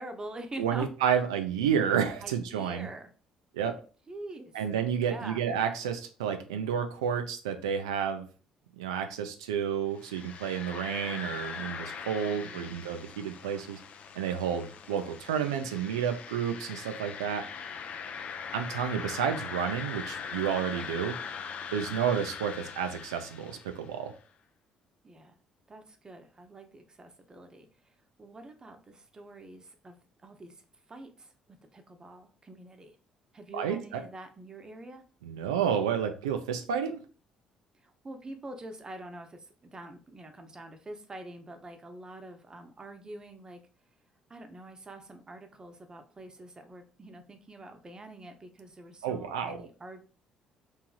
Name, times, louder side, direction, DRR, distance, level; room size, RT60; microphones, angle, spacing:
voice 1, 0.0-0.9 2.2-3.1 4.1-4.6 5.0-5.4 12.2-12.8 25.0-25.4 25.7-27.7 28.2-30.0 30.2-30.6 30.9-31.3 31.7-33.0 33.3-35.0 37.8-43.6 44.3-50.0, right 2 dB, 25° right, 6 dB, 0.7 m, -45 dB
voice 2, 0.6-2.9 3.5-3.8 4.5-8.3 8.8-13.8 14.1-17.5 18.5-21.2 21.7-24.1 33.5-34.0 35.2-37.0 49.0-49.6, right 8 dB, 80° right, 6 dB, 0.3 m, -30 dB
sound 1, 9.9-23.9, left 6 dB, 50° left, 0.4 m, -41 dB
3.1 x 2.6 x 2.3 m, 0.36 s
hypercardioid pair, 50°, 3 cm